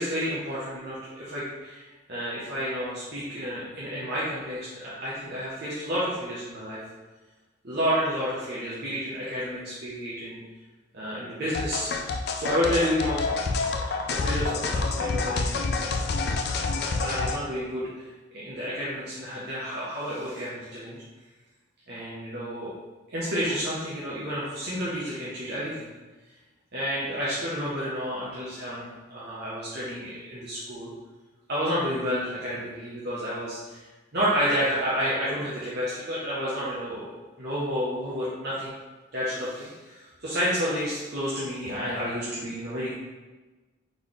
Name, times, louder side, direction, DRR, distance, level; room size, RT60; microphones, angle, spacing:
voice 1, 0.0-6.8 7.6-10.4 10.9-15.6 15.9-16.0 17.0-18.0 18.3-21.0 21.9-22.7 23.1-25.9 26.7-30.9 31.5-33.8 34.1-38.7 39.1-42.9, equal, 50° right, -8 dB, 0.9 m, -30 dB
sound 1, 11.5-17.4, left 3 dB, 50° left, 0.4 m, -28 dB
3.8 x 3.3 x 3.9 m, 1.2 s
head